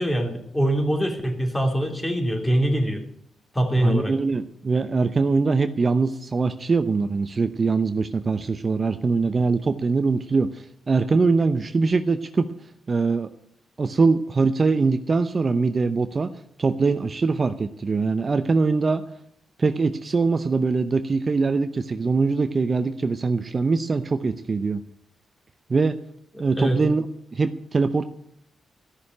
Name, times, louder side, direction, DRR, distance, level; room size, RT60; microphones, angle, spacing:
voice 1, 0.0-3.0 3.5-4.1 26.6-26.8, right 1 dB, 10° left, 3 dB, 3.3 m, -23 dB
voice 2, 3.8-12.5 12.9-13.3 13.8-16.3 16.6-19.0 19.6-24.8 25.7-26.0 26.4-27.1 27.3-28.1, right 4 dB, 40° right, 10 dB, 0.7 m, -22 dB
14.0 x 6.5 x 9.7 m, 0.70 s
cardioid pair, 80°, 0 cm